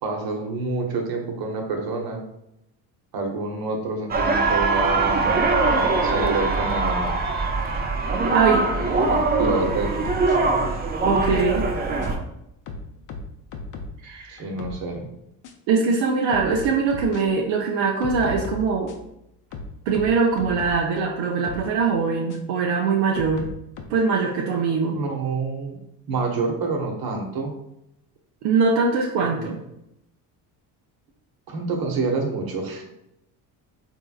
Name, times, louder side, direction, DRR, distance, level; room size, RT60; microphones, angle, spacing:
voice 1, 0.0-2.2 3.1-5.3 5.9-7.2 9.1-9.9 14.3-15.1 24.7-25.8 26.1-27.6 29.2-29.6 31.5-32.9, right 3 dB, 50° right, 2 dB, 1.0 m, -27 dB
sound 1, 4.1-12.2, right 3 dB, 20° right, 0.4 m, -22 dB
voice 2, 8.3-8.7 11.0-11.7 14.0-14.4 15.7-18.9 19.9-23.5 23.9-25.0 28.4-29.6, right 5 dB, 75° right, -1 dB, 0.6 m, -22 dB
sound 2, 9.4-10.4 11.2-12.2 12.7-14.0 14.4-14.8 15.4-15.5 16.3-17.2 18.0-19.1 19.5-20.9 21.4-21.7 22.3-22.4 23.2-23.8, left 3 dB, 45° left, 0.6 m, -35 dB
3.5 x 2.8 x 2.3 m, 0.81 s
supercardioid pair, 80°, 46 cm